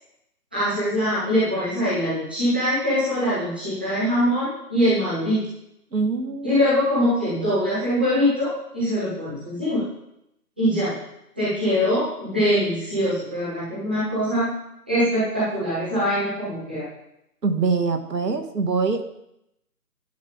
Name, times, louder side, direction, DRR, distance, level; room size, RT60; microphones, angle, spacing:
voice 1, 0.5-5.4 6.4-9.8 10.6-10.9 11.3-14.5 14.9-16.8, equal, 5° right, -11 dB, 1.1 m, -23 dB
voice 2, 5.9-6.6 17.4-19.0, right 4 dB, 85° right, 6 dB, 1.6 m, -24 dB
10.5 x 6.2 x 5.0 m, 0.82 s
figure-of-eight pair, 170°, 48 cm